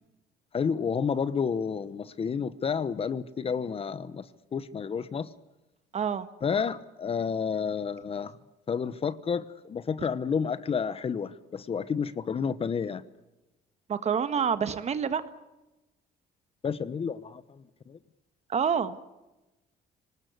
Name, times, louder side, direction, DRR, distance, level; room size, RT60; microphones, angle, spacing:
voice 1, 0.5-5.3 6.4-8.4 8.7-13.0 16.6-18.0, left 6 dB, 35° left, 15 dB, 1.0 m, -30 dB
voice 2, 5.9-6.3 13.9-15.2 18.5-19.0, right 7 dB, 40° right, 12 dB, 1.6 m, -27 dB
25.5 x 19.0 x 8.2 m, 1.0 s
cardioid pair, 110°, 17 cm